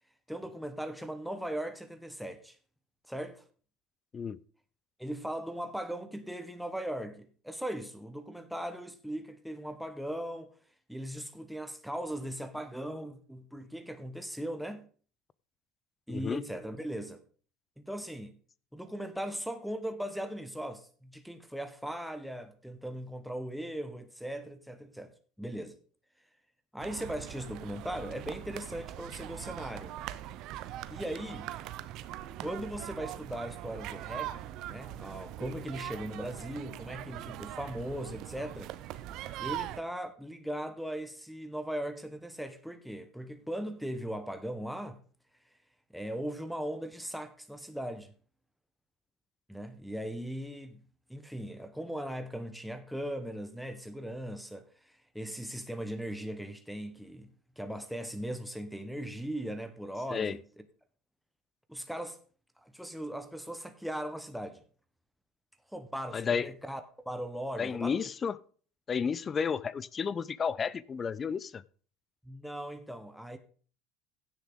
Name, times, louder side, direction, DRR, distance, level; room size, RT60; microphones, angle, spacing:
voice 1, 0.3-2.6 3.1-3.4 5.0-10.5 10.9-14.9 16.1-17.2 17.8-18.3 18.7-25.7 26.7-29.9 30.9-31.5 32.4-38.7 39.4-45.0 45.9-48.1 49.5-50.8 51.1-57.3 57.6-60.4 61.7-62.2 62.6-64.6 65.7-68.0 72.2-73.4, right 1 dB, ahead, 1.3 m, -39 dB
voice 2, 16.1-16.4 60.1-60.4 66.1-66.5 67.6-68.3 68.9-71.6, left 6 dB, 30° left, 0.6 m, -32 dB
sound 1, 26.8-39.8, right 13 dB, 55° right, 0.8 m, -41 dB
16.0 x 7.1 x 3.9 m
hypercardioid pair, 80°, 0 cm